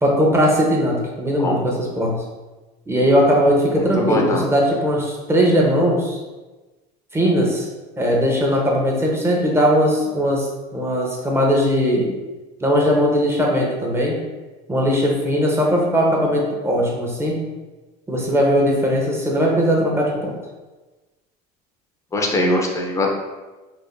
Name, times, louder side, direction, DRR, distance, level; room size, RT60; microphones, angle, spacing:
voice 1, 0.0-2.2 2.9-6.2 7.1-7.7 8.0-12.1 12.6-14.2 14.7-17.4 18.1-20.3, equal, 10° right, -2 dB, 1.0 m, -19 dB
voice 2, 3.7-4.4 22.1-23.1, left 1 dB, 15° left, 0 dB, 0.7 m, -21 dB
4.7 x 2.5 x 2.6 m, 1.2 s
supercardioid pair, 100°, 20 cm